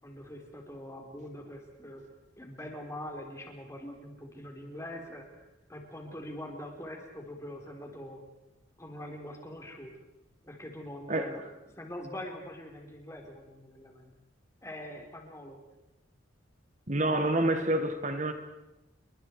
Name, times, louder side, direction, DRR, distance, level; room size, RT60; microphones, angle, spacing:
voice 1, 0.0-2.0 2.4-5.3 5.7-8.2 8.8-9.9 10.4-11.4 11.8-14.1 14.6-15.6, left 1 dB, 15° left, 2 dB, 4.1 m, -43 dB
voice 2, 16.9-18.3, right 1 dB, 40° right, 7 dB, 1.4 m, -27 dB
29.0 x 23.5 x 4.7 m, 0.98 s
head